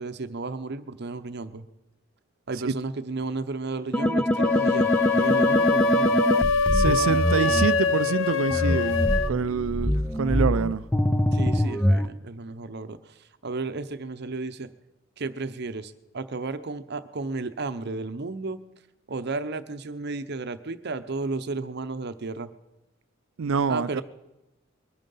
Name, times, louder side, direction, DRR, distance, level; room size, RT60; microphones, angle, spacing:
voice 1, 0.0-1.7 2.5-6.2 11.3-14.7 15.2-18.6 19.1-22.5 23.7-24.0, right 3 dB, 55° right, 0.8 m, -33 dB
sound 1, 3.9-7.7 8.5-12.1, left 1 dB, 5° left, 0.5 m, -24 dB
sound 2, 4.4-9.3, left 4 dB, 70° left, 0.6 m, -24 dB
voice 2, 6.7-9.0 9.3-10.9 23.4-24.0, right 5 dB, 85° right, 0.5 m, -26 dB
22.5 x 9.1 x 5.5 m
head